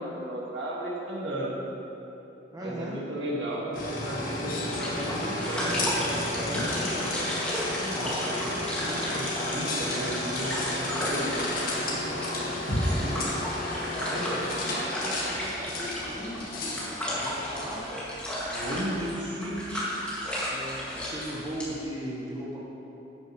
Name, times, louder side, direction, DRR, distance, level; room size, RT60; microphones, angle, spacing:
voice 1, 0.0-1.6 2.6-7.2 9.1-12.3 12.6-13.4 14.1-14.3 18.5-19.9, right 1 dB, 90° right, -4 dB, 1.8 m, -35 dB
voice 2, 2.5-3.0 7.8-9.2 14.2-17.9 20.5-22.7, equal, 20° right, -5 dB, 1.1 m, -38 dB
sound 1, 3.7-18.1, left 1 dB, 55° left, 1.8 m, -32 dB
sound 2, 4.7-21.7, equal, 5° left, 2.0 m, -34 dB
11.5 x 9.0 x 3.1 m, 3.0 s
head